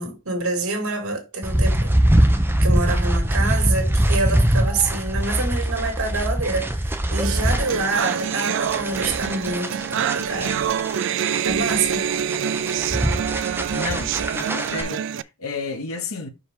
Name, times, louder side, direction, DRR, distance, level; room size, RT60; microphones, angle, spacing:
voice 1, 0.0-2.0 2.6-10.6 11.4-12.0, right 3 dB, 85° right, 2.4 m, -26 dB
sound 1, 1.4-14.8, right 1 dB, 10° right, 0.8 m, -22 dB
sound 2, 7.2-15.2, right 8 dB, 60° right, 0.3 m, -26 dB
voice 2, 13.7-16.3, left 4 dB, 80° left, 1.3 m, -32 dB
5.6 x 5.2 x 3.7 m
head